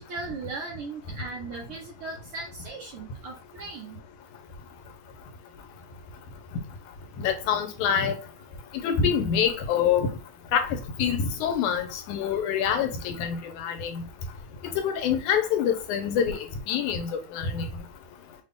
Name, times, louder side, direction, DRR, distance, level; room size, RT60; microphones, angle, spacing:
voice 1, 0.0-4.0, right 3 dB, 70° right, 1.3 m, -38 dB
voice 2, 7.2-8.2 8.8-10.1 10.5-10.7 11.0-14.0 14.8-16.4 16.7-17.7, left 7 dB, 85° left, 2.3 m, -25 dB
6.1 x 2.4 x 3.6 m
omnidirectional pair, 3.4 m